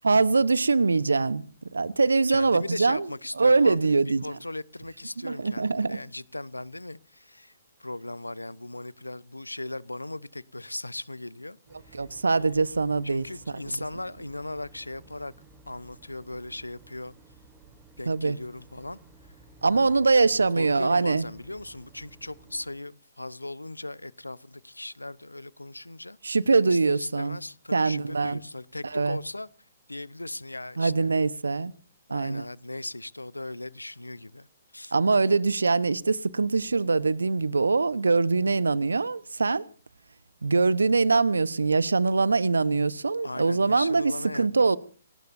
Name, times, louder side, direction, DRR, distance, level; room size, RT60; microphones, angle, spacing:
voice 1, 0.0-1.5 1.7-3.1 3.4-4.2 5.2-6.0 11.9-13.2 18.1-18.4 19.6-21.2 26.2-27.4 27.7-28.4 28.9-29.2 30.8-31.7 32.1-32.4 34.9-39.6 40.4-44.8, right 4 dB, 75° right, 1.0 m, -23 dB
voice 2, 2.3-7.5 7.8-11.6 11.8-12.1 12.3-12.6 13.0-15.3 15.7-17.1 18.0-19.0 19.8-20.0 20.5-26.2 26.6-29.5 29.9-31.1 32.1-34.5 34.7-34.9 43.2-44.8, left 2 dB, 90° left, 0.8 m, -38 dB
sound 1, 11.7-22.7, right 3 dB, 15° right, 5.3 m, -54 dB
29.0 x 18.5 x 2.7 m
figure-of-eight pair, 130°, 0 cm